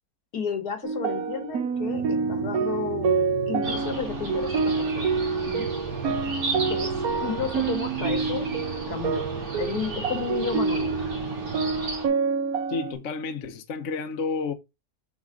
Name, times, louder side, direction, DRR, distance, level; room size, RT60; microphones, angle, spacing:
voice 1, 0.3-5.7 6.7-6.9 7.2-8.5 8.9-9.2 9.6-11.0, left 6 dB, 85° left, 2.1 m, -32 dB
sound 1, 0.8-12.9, right 5 dB, 70° right, 1.4 m, -27 dB
sound 2, 1.7-12.0, right 6 dB, 90° right, 1.5 m, -37 dB
sound 3, 3.6-12.1, right 2 dB, 50° right, 2.3 m, -36 dB
voice 2, 12.7-14.5, left 4 dB, 55° left, 1.2 m, -30 dB
7.3 x 4.1 x 3.8 m
omnidirectional pair, 1.6 m